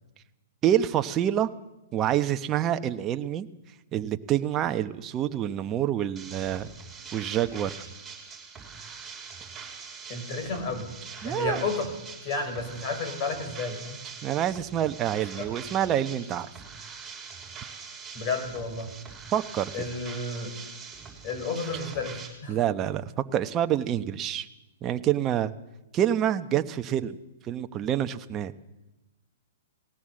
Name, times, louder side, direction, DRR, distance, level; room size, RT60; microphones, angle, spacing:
voice 1, 0.6-1.5 1.9-3.5 3.9-6.7 7.1-7.7 11.2-11.6 14.2-16.5 19.3-19.7 22.5-23.0 23.3-24.5 24.8-25.5 25.9-27.2 27.5-28.5, right 11 dB, 25° right, 9 dB, 1.0 m, -27 dB
sound 1, 6.2-22.3, right 6 dB, 10° right, 5.4 m, -43 dB
voice 2, 10.1-10.9 11.2-11.9 12.2-14.0 15.4-15.5 18.1-18.9 19.7-20.5 21.2-22.2 22.4-22.6, left 3 dB, 40° left, 6 dB, 5.8 m, -31 dB
19.0 x 17.5 x 7.7 m, 1.0 s
hypercardioid pair, 130°, 0 cm